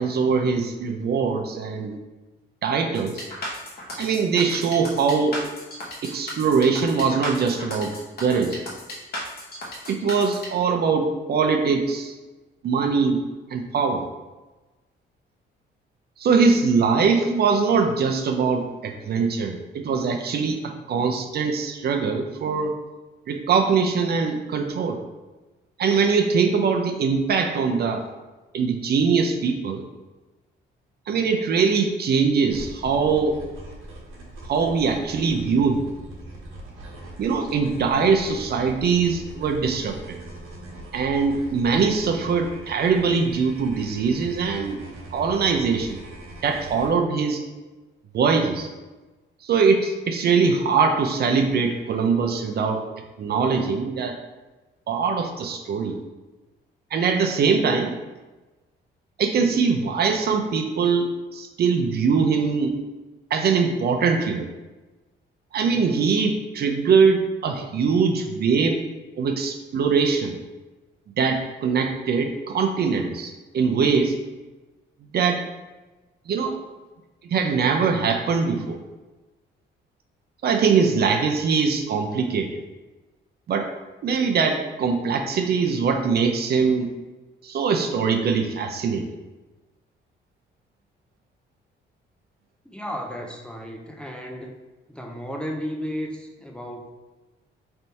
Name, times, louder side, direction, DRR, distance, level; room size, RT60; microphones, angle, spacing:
voice 1, 0.0-2.0 2.6-3.3 4.0-5.4 6.0-8.6 9.9-12.1 12.6-13.2 13.5-14.0 16.2-22.7 23.3-25.0 25.8-28.0 28.5-29.8 31.1-33.4 34.5-35.9 37.2-40.2 40.9-44.8 45.1-46.0 46.4-47.4 48.1-48.7 49.4-52.8 53.2-54.2 54.9-56.0 56.9-58.0 59.2-61.1 61.3-62.8 63.3-64.5 65.5-68.8 69.2-70.4 71.2-74.2 75.1-75.4 76.3-76.6 77.2-78.8 80.4-82.5 83.5-83.7 84.0-86.9 87.4-89.0, right 5 dB, 55° right, 4 dB, 0.5 m, -22 dB
sound 1, 2.9-10.5, left 1 dB, 50° left, 1.1 m, -35 dB
sound 2, 32.5-46.9, right 2 dB, 85° right, 1.1 m, -41 dB
voice 2, 92.6-94.6 94.9-96.9, equal, 5° left, 1 dB, 0.5 m, -33 dB
3.4 x 2.6 x 4.3 m, 1.2 s
cardioid pair, 90°, 20 cm